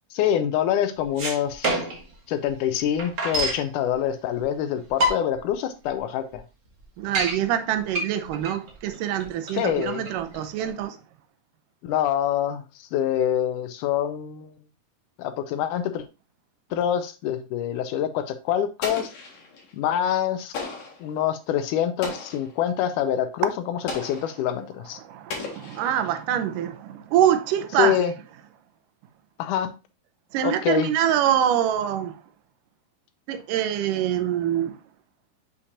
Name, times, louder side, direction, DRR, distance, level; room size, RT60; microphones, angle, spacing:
voice 1, 0.1-1.8 2.3-6.4 9.5-10.0 11.8-14.5 15.2-16.1 16.7-19.1 19.7-20.5 21.0-25.0 27.8-28.1 29.4-29.8 30.4-30.9, left 10 dB, 80° left, 2.0 m, -25 dB
sound 1, 1.0-2.1 2.5-2.6 2.7-3.7 4.4-4.5 4.8-5.5 6.0-6.1 6.3-6.4 6.8-7.4 7.9-10.8, right 1 dB, 50° right, 0.9 m, -27 dB
voice 2, 7.0-11.0 25.0-28.0 30.3-32.2 33.3-34.8, right 10 dB, 80° right, 2.2 m, -25 dB
Explosion, 18.8-19.7 20.5-21.1 22.0-22.6 23.9-24.4 25.3-26.2, left 4 dB, 60° left, 2.8 m, -35 dB
6.7 x 5.5 x 2.7 m
omnidirectional pair, 3.8 m